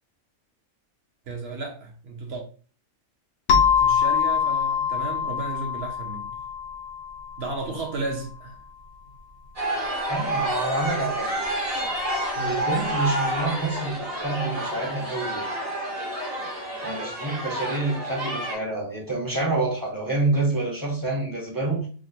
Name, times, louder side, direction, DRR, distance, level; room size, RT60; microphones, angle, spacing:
voice 1, 1.3-2.4 3.8-6.3 7.4-8.6 12.3-12.7, right 3 dB, 55° right, 0.9 m, -33 dB
sound 1, 3.5-7.9, left 7 dB, 65° left, 0.8 m, -24 dB
sound 2, 9.6-18.6, right 1 dB, 80° right, 1.7 m, -29 dB
voice 2, 10.1-11.3 12.4-15.5 16.8-21.9, right 2 dB, 20° right, 0.6 m, -27 dB
3.7 x 2.2 x 2.7 m
omnidirectional pair, 1.4 m